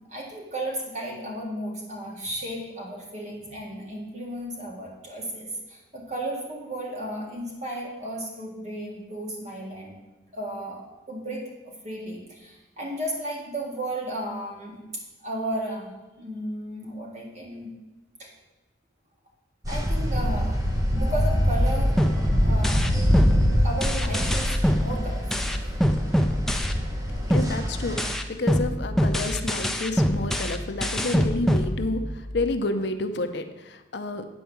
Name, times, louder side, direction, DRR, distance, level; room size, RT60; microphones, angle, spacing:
voice 1, 0.1-10.0 10.3-14.8 15.2-17.7 18.2-18.3 19.7-20.6 20.9-22.0 22.4-22.9 23.6-25.5, right 1 dB, 35° right, -2 dB, 2.0 m, -34 dB
sound 1, 19.6-28.1, equal, 20° right, 0.9 m, -24 dB
sound 2, 22.0-27.0 27.3-32.3, equal, ahead, 0.4 m, -25 dB
voice 2, 27.3-28.0 28.3-32.0 32.3-34.3, left 2 dB, 60° left, 8 dB, 0.6 m, -29 dB
9.1 x 4.6 x 7.1 m, 1.1 s
head